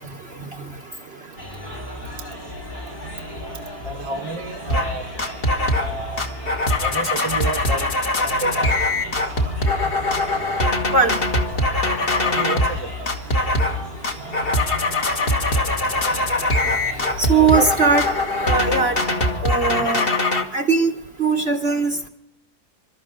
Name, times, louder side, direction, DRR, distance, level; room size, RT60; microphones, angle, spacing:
sound 1, 1.4-19.4, equal, 65° left, 4.7 m, -35 dB
voice 1, 3.8-5.1 5.8-6.2 6.8-7.9 8.2-8.8 12.2-12.9 15.6-15.7 17.4-17.7, right 3 dB, 20° right, 4 dB, 1.0 m, -30 dB
sound 2, 4.7-4.9 5.2-5.9 6.2-12.8 13.1-13.8 14.0-20.4, left 2 dB, 35° left, 1.6 m, -22 dB
voice 2, 17.2-18.1 18.4-19.0 19.4-20.1 20.5-22.1, right 4 dB, 45° right, 4 dB, 1.1 m, -20 dB
28.0 x 13.0 x 3.7 m, 0.81 s
omnidirectional pair, 1.7 m